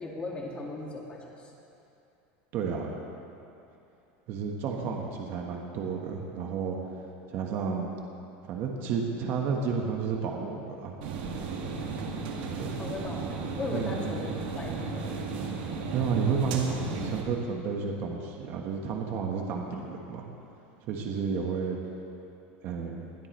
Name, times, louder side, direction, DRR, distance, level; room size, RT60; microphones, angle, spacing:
voice 1, 0.0-1.5 12.8-13.2 13.5-15.3, left 2 dB, 20° left, -2 dB, 2.1 m, -37 dB
voice 2, 2.5-2.9 4.3-6.8 7.3-7.9 8.4-10.9 12.5-12.8 13.7-14.0 15.9-20.3 20.8-21.8 22.6-23.1, right 5 dB, 45° right, 1 dB, 1.4 m, -31 dB
sound 1, 11.0-17.2, right 4 dB, 75° right, 1.9 m, -34 dB
20.5 x 12.5 x 3.2 m, 2.7 s
supercardioid pair, 150°, 5 cm